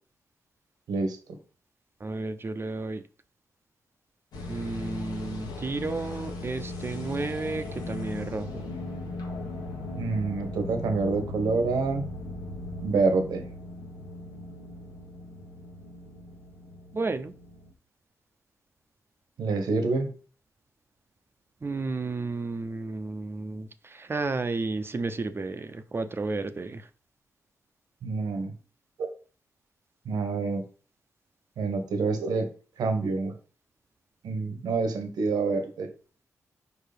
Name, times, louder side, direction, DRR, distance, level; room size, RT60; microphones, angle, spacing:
voice 1, 2.0-3.0 4.5-8.6 16.9-17.3 21.6-26.9, right 3 dB, 35° right, 10 dB, 0.7 m, -32 dB
sound 1, 4.3-17.7, left 2 dB, 90° left, 1.5 m, -38 dB
voice 2, 10.0-12.0 12.8-13.4 19.4-20.1 28.0-28.5 30.0-30.6 31.6-32.5 32.8-33.3 34.2-35.9, right 4 dB, 80° right, 6 dB, 1.3 m, -27 dB
4.9 x 4.7 x 5.1 m, 0.38 s
cardioid pair, 60°, 7 cm